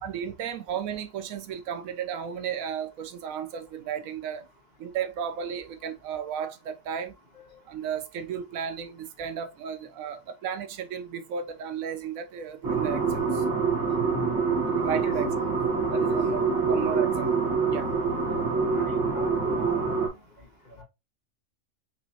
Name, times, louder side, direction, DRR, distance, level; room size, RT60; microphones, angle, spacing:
voice 1, 0.0-4.4 4.8-7.1 7.7-13.4 14.8-15.3 15.9-17.3 17.7-17.9, right 8 dB, 90° right, 1.1 m, -34 dB
sound 1, 12.6-20.1, right 4 dB, 15° right, 1.1 m, -26 dB
voice 2, 18.7-20.0, equal, 30° left, 2.1 m, -40 dB
5.6 x 3.0 x 2.7 m
omnidirectional pair, 1.4 m